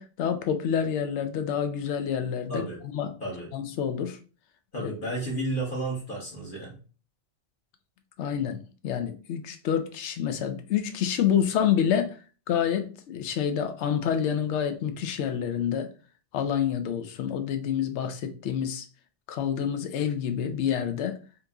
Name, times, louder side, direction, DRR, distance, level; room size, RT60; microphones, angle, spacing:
voice 1, 0.0-2.7 2.9-3.2 3.5-4.2 4.8-4.9 8.2-12.2 12.5-15.9 16.3-18.8 19.3-21.2, left 8 dB, 85° left, 0.9 m, -28 dB
voice 2, 4.7-6.8, right 1 dB, 55° left, 1.1 m, -32 dB
2.8 x 2.6 x 3.4 m
omnidirectional pair, 1.1 m